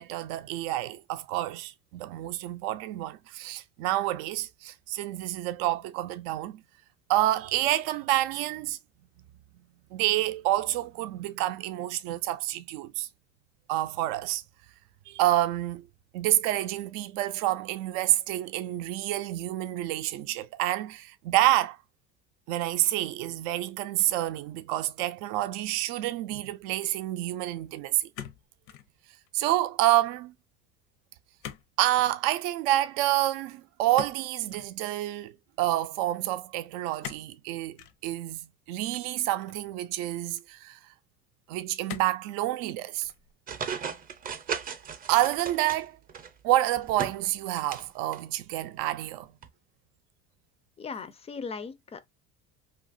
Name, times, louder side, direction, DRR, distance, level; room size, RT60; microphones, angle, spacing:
voice 1, 0.0-6.6 7.1-8.8 9.9-13.1 13.7-14.4 15.1-15.8 16.1-21.8 22.5-28.1 29.3-30.3 31.8-37.8 38.0-40.8 41.5-43.1 45.1-46.0 46.4-49.3, right 15 dB, 85° right, 0.5 m, -28 dB
sound 1, 28.1-28.9 29.3-29.7 31.4-31.7 32.0-32.2 33.9-34.7 37.0-37.3 37.8-38.0 38.9-39.7 40.4-40.5 41.9-42.3 42.9-43.3 43.7-44.0, left 10 dB, 75° left, 0.6 m, -43 dB
sound 2, 43.5-46.3 46.7-47.9 48.1-48.2 49.4-49.5, right 7 dB, 30° right, 0.5 m, -36 dB
voice 2, 50.8-52.0, left 5 dB, 20° left, 0.3 m, -38 dB
2.8 x 2.4 x 2.4 m
cardioid pair, 125°, 30 cm